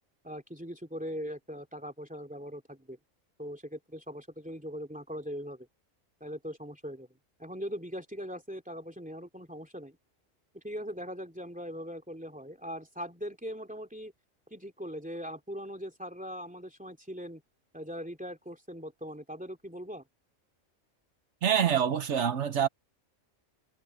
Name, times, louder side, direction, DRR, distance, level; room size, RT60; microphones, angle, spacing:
voice 1, 0.2-3.0 3.4-5.7 6.2-7.1 7.4-10.0 10.5-14.1 14.5-17.4 17.7-20.0, equal, 5° right, 2.8 m, -40 dB
voice 2, 21.4-22.7, right 8 dB, 65° right, 1.1 m, -26 dB
omnidirectional pair, 1.3 m